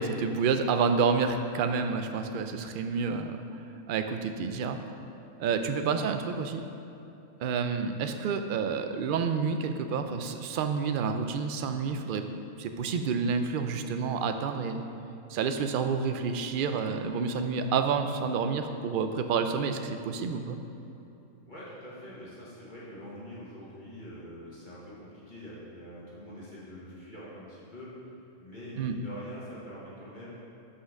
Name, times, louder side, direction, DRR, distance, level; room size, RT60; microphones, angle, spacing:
voice 1, 0.0-3.4 3.9-4.8 5.4-6.6 7.4-12.2 12.6-14.8 15.3-20.6 28.8-29.0, right 5 dB, 65° right, 7 dB, 0.5 m, -29 dB
voice 2, 21.5-27.9 28.4-30.4, equal, 40° left, -8 dB, 1.7 m, -45 dB
5.7 x 5.6 x 6.3 m, 2.9 s
omnidirectional pair, 1.3 m